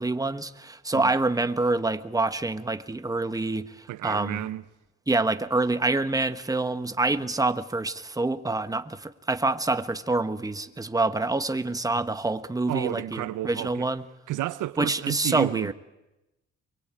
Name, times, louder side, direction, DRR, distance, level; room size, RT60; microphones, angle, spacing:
voice 1, 0.0-4.5 5.1-14.0 14.8-15.7, right 2 dB, 10° right, 1.3 m, -26 dB
voice 2, 3.9-4.6 12.7-13.9 14.3-15.7, right 15 dB, 80° right, 0.8 m, -31 dB
23.5 x 23.5 x 9.0 m
cardioid pair, 95°, 30 cm